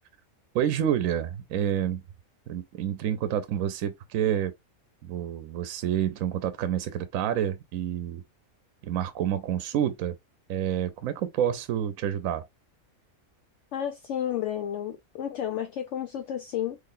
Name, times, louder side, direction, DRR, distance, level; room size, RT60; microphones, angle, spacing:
voice 1, 0.5-2.0 2.5-4.5 5.0-8.2 8.8-10.2 10.5-12.4, right 10 dB, 75° right, 1.0 m, -28 dB
voice 2, 13.7-16.8, left 10 dB, 70° left, 0.8 m, -31 dB
3.8 x 3.2 x 2.5 m
omnidirectional pair, 1.5 m